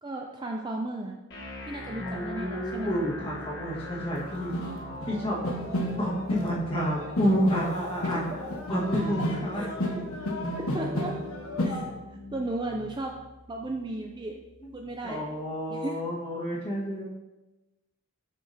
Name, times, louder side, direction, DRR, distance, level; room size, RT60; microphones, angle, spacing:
voice 1, 0.0-1.2 1.7-3.0 8.0-8.4 9.5-9.7 10.7-11.2 11.6-11.9 12.3-13.2 13.5-14.4 14.7-15.2 15.7-16.0, right 2 dB, 20° right, 1 dB, 0.3 m, -35 dB
sound 1, 1.3-15.3, left 1 dB, 50° left, 1.2 m, -42 dB
voice 2, 2.0-4.5 5.1-5.4 6.0-8.2 8.7-9.7 14.6-14.7 15.0-17.0, equal, 25° left, -5 dB, 1.5 m, -29 dB
sound 2, 4.2-4.3 4.5-6.5 6.8-11.8, left 1 dB, 75° left, 1.2 m, -32 dB
7.4 x 5.8 x 2.7 m, 1.1 s
head